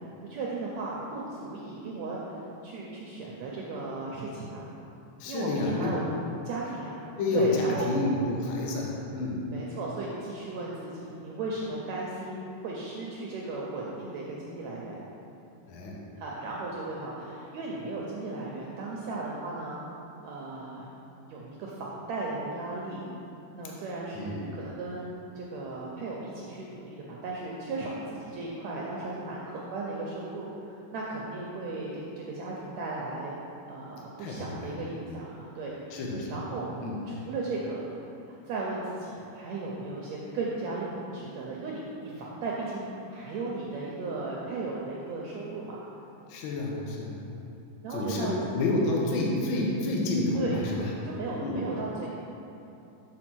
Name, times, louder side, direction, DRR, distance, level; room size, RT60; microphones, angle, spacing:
voice 1, 0.3-4.6 5.3-6.0 6.4-7.0 7.3-7.9 9.5-15.0 16.2-19.8 20.2-20.9 21.2-23.1 23.5-33.3 33.7-35.9 36.3-36.7 37.1-37.9 38.3-45.8 47.8-48.4 50.4-50.6 51.0-52.1, right 3 dB, 75° right, -4 dB, 1.7 m, -36 dB
voice 2, 5.2-5.9 7.2-9.5 15.7-16.0 24.1-24.5 34.2-34.9 35.9-36.4 36.8-37.0 46.3-47.2 47.9-50.9 51.4-51.6, left 2 dB, 80° left, -2 dB, 1.1 m, -29 dB
6.9 x 4.6 x 6.1 m, 2.9 s
omnidirectional pair, 3.8 m